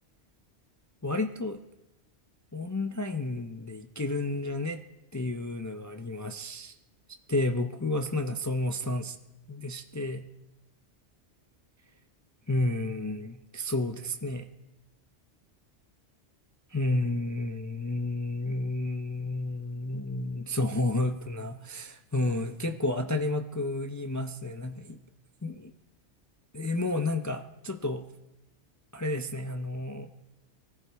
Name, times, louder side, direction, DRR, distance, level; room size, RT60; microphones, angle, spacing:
voice 1, 1.0-1.6 2.5-4.8 5.1-6.7 7.3-9.2 9.5-10.3 12.5-14.5 16.7-25.0 25.4-25.7 26.5-28.0 28.9-30.1, left 2 dB, 25° left, 6 dB, 0.4 m, -31 dB
24.5 x 14.5 x 3.4 m, 0.99 s
omnidirectional pair, 1.2 m